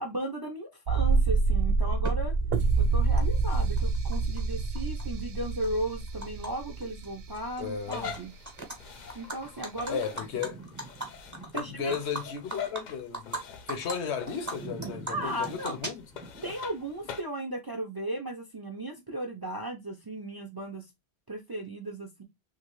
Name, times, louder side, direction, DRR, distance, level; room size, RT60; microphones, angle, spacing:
voice 1, 0.0-2.3 2.8-8.3 9.1-10.0 11.5-12.0 15.1-15.8 16.4-20.9 21.3-22.2, right 1 dB, 35° right, 0.4 m, -36 dB
sound 1, 0.9-7.7 8.0-8.1, right 4 dB, 70° right, 0.7 m, -27 dB
Animal, 2.0-2.1 3.2-3.3 3.5-4.4 4.8-6.5 6.8-7.1 7.3-8.2 8.5-8.8 9.1-13.4 13.7-13.9 14.3-16.4, right 2 dB, 20° right, 0.8 m, -38 dB
voice 2, 7.6-8.1 9.9-10.6 11.5-16.0 16.4-16.5, left 6 dB, 85° left, 1.0 m, -34 dB
sound 2, 7.8-17.2, left 6 dB, 55° left, 0.5 m, -45 dB
3.1 x 2.4 x 3.0 m
omnidirectional pair, 1.1 m